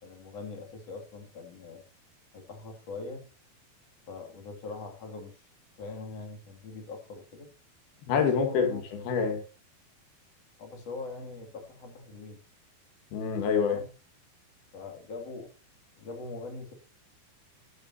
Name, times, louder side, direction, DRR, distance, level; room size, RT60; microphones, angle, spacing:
voice 1, 0.0-1.9 2.3-3.3 4.1-5.4 5.8-7.5 8.2-8.9 10.6-12.4 13.6-13.9 14.7-15.5 16.0-16.7, left 3 dB, 45° left, 3.2 m, -42 dB
voice 2, 8.1-9.4 13.1-13.8, left 6 dB, 80° left, 3.7 m, -26 dB
13.0 x 12.5 x 2.8 m
omnidirectional pair, 4.4 m